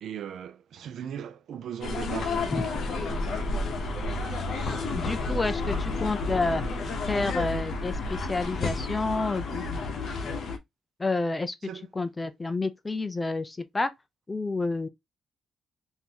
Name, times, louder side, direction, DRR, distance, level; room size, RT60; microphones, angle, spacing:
voice 1, 0.0-3.5 11.6-11.9, right 9 dB, 60° right, 0.5 m, -39 dB
sound 1, 1.8-10.6, left 3 dB, 50° left, 0.8 m, -31 dB
voice 2, 4.9-6.6 7.1-9.8 11.0-11.5 11.9-13.9 14.3-14.9, left 3 dB, 15° left, 0.4 m, -29 dB
3.8 x 2.6 x 2.8 m
cardioid pair, 175°, 0 cm